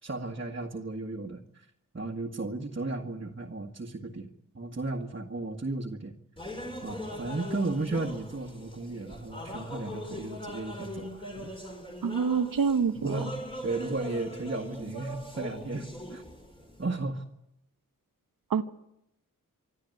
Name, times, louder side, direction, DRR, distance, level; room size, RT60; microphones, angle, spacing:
voice 1, 0.0-1.7 1.9-4.3 4.5-6.1 6.8-11.5 12.9-13.3 13.6-16.2 16.8-17.2, right 3 dB, 35° right, 0 dB, 1.9 m, -34 dB
sound 1, 6.4-16.8, left 1 dB, 15° left, 4.4 m, -41 dB
voice 2, 12.0-13.3 18.5-18.6, right 6 dB, 80° right, 9 dB, 1.1 m, -26 dB
26.0 x 13.5 x 9.4 m, 0.83 s
wide cardioid pair, 85°, 33 cm